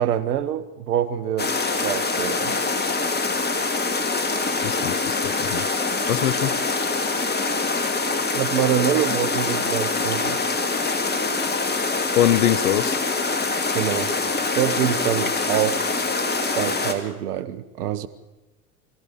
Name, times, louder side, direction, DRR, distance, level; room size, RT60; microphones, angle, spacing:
voice 1, 0.0-1.5 1.8-2.5 8.3-10.4 13.7-14.1 14.6-15.9 16.4-18.1, right 11 dB, 75° right, 1.6 m, -25 dB
sound 1, 1.4-16.9, left 3 dB, 20° left, 2.8 m, -24 dB
voice 2, 4.6-5.7 6.1-6.6 12.1-13.0, left 12 dB, 75° left, 0.9 m, -23 dB
25.5 x 15.5 x 7.2 m
hypercardioid pair, 85°, 47 cm